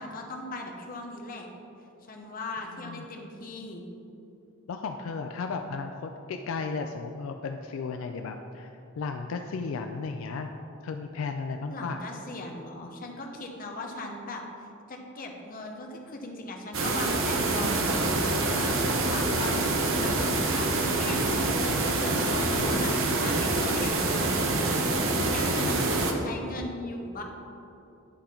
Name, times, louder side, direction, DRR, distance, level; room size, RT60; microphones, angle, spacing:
voice 1, 0.0-1.5 2.1-3.8 11.7-14.4 14.9-20.1 20.5-21.3 21.5-22.9 23.2-24.7 25.1-25.7 26.2-27.2, left 2 dB, 45° left, 1 dB, 0.9 m, -39 dB
voice 2, 4.7-10.5 10.8-12.0 19.2-19.4 22.5-23.1 25.6-26.0, left 4 dB, 75° left, 5 dB, 0.4 m, -35 dB
sound 1, 16.7-26.1, right 2 dB, 70° right, 0.8 m, -26 dB
10.0 x 3.8 x 4.3 m, 2.9 s
head